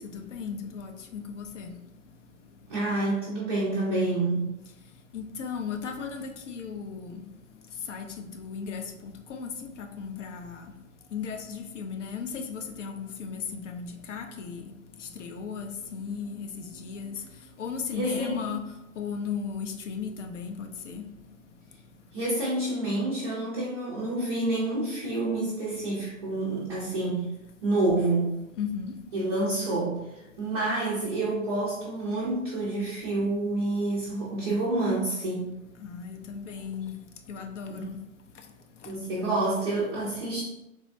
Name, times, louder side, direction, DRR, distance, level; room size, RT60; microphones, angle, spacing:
voice 1, 0.1-1.7 5.1-7.2 7.9-8.8 9.3-10.6 11.1-14.6 15.2-17.1 17.6-18.6 19.0-21.0 28.6-28.9 35.8-36.9 37.3-37.9, left 6 dB, 60° left, 5 dB, 0.5 m, -36 dB
voice 2, 2.7-4.4 17.9-18.3 22.1-27.3 27.6-28.3 29.1-35.5 37.7-37.8 38.8-40.4, right 2 dB, 20° right, -7 dB, 0.3 m, -28 dB
3.4 x 2.1 x 2.6 m, 0.93 s
hypercardioid pair, 125°, 41 cm